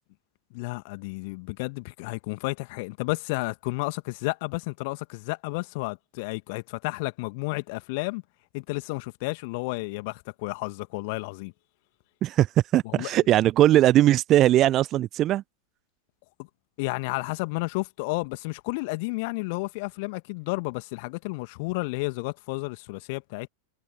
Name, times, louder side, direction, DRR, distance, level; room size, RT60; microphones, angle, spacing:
voice 1, 0.5-8.2 8.5-11.5 12.8-13.2 16.4-16.5 16.8-23.5, left 27 dB, 45° left, 2.1 m, -32 dB
voice 2, 12.7-15.4, right 13 dB, 35° right, 0.9 m, -20 dB
figure-of-eight pair, 90°, 0 cm